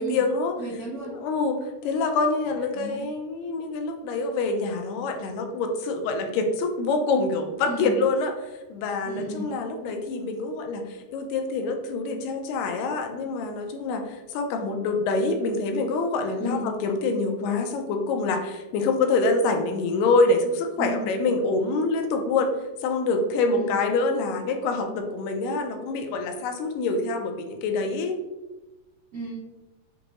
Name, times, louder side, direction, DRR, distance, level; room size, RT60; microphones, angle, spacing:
voice 1, 0.0-0.5 1.1-22.5 22.8-28.2, left 3 dB, 85° left, 4 dB, 2.2 m, -26 dB
voice 2, 0.6-1.1 2.5-3.0 7.7-8.0 9.0-9.5 16.4-16.7 20.7-21.0 23.5-23.7 29.1-29.4, right 2 dB, 80° right, -10 dB, 0.7 m, -33 dB
6.1 x 2.6 x 3.0 m, 1.1 s
omnidirectional pair, 3.8 m